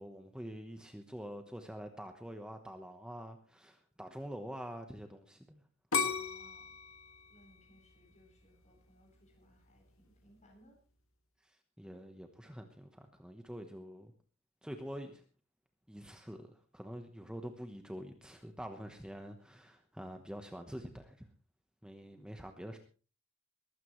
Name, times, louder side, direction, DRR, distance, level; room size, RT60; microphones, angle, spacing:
voice 1, 0.0-5.6 6.0-6.2 11.4-14.1 14.6-15.2 15.9-21.3 21.8-22.8, equal, 5° right, 5 dB, 1.1 m, -46 dB
sound 1, 5.9-8.8 9.3-9.8, left 5 dB, 85° left, 2.0 m, -36 dB
voice 2, 6.2-6.7 7.3-10.8, equal, 35° left, 2 dB, 7.9 m, -65 dB
22.0 x 15.0 x 3.2 m, 0.38 s
head